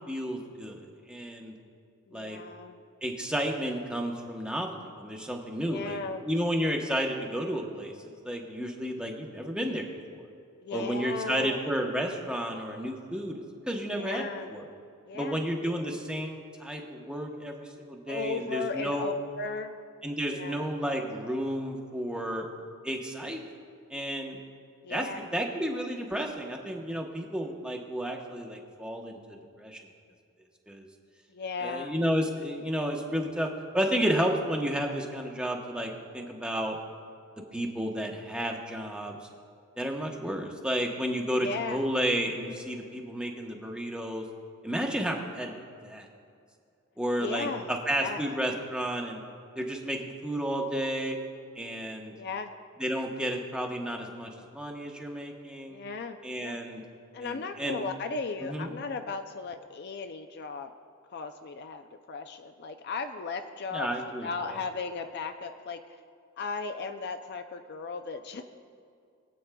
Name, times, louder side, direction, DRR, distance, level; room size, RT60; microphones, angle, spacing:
voice 1, 0.0-1.5 2.1-2.4 3.0-6.0 6.2-7.9 8.2-10.3 10.7-14.7 15.1-19.1 20.0-22.5 22.8-23.4 23.9-24.4 24.9-29.8 30.7-30.9 31.6-33.5 33.7-36.8 37.5-39.2 39.8-44.2 44.6-46.1 47.0-49.2 49.6-51.2 51.6-52.1 52.8-55.8 56.2-56.8 57.2-57.8 58.4-58.7 63.7-64.3, equal, 5° right, 1 dB, 0.9 m, -32 dB
voice 2, 2.1-2.8 5.6-6.3 10.6-11.6 13.9-14.5 15.1-15.4 18.1-19.8 20.2-20.7 24.8-25.3 31.3-32.1 41.4-41.9 47.2-48.6 52.2-52.5 55.7-56.6 57.1-60.7 61.1-63.9 64.2-66.0 66.4-68.4, left 4 dB, 50° left, 6 dB, 0.4 m, -36 dB
22.5 x 8.5 x 2.3 m, 2.3 s
head